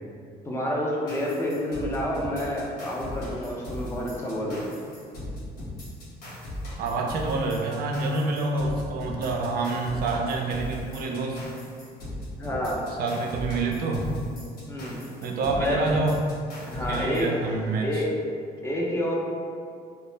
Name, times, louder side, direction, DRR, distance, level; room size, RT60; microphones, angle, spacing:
voice 1, 0.4-4.7 12.4-12.8 14.7-15.0 15.5-15.8 16.6-17.3 17.8-18.1 18.6-19.1, left 1 dB, 15° left, -3 dB, 0.5 m, -29 dB
sound 1, 1.1-18.0, left 1 dB, 65° left, 0.8 m, -38 dB
voice 2, 6.8-11.4 12.9-14.1 15.2-16.2 16.9-18.0, right 3 dB, 60° right, 1 dB, 0.4 m, -27 dB
2.2 x 2.0 x 3.2 m, 2.2 s
cardioid pair, 110°, 17 cm